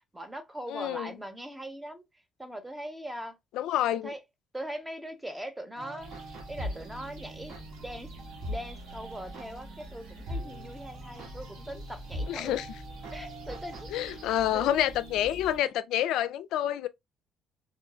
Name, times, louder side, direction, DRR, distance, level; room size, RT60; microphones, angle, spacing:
voice 1, 0.1-2.0 2.4-3.3 3.9-4.2 4.5-6.1 6.5-7.5 7.8-8.1 8.5-12.6 13.1-14.2 14.5-14.7, equal, 10° right, 0.9 m, -40 dB
voice 2, 0.7-1.2 3.5-4.1 12.3-12.7 13.9-16.9, left 12 dB, 75° left, 0.3 m, -28 dB
sound 1, 5.8-15.6, equal, 60° right, 2.4 m, -42 dB
sound 2, 6.0-15.6, right 1 dB, 85° right, 1.4 m, -47 dB
3.5 x 2.6 x 2.3 m
cardioid pair, 90°, 0 cm